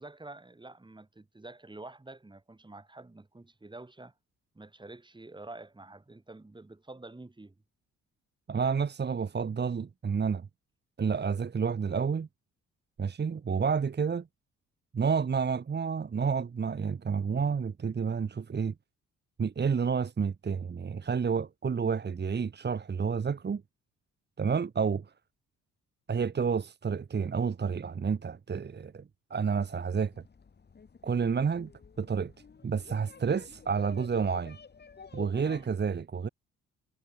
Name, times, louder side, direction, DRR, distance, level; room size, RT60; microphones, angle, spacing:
voice 1, 0.0-4.1 4.5-7.6 35.5-35.7, right 2 dB, 15° right, 6.2 m, -48 dB
voice 2, 8.5-10.5 11.0-12.3 13.0-14.3 14.9-18.7 19.4-23.6 24.4-25.1 26.1-29.0 29.3-30.1 31.0-31.7 32.0-32.3 32.6-34.6 35.1-36.3, right 6 dB, 35° right, 1.7 m, -30 dB
sound 1, 29.5-35.7, left 5 dB, 35° left, 2.7 m, -50 dB
cardioid pair, 90°, 30 cm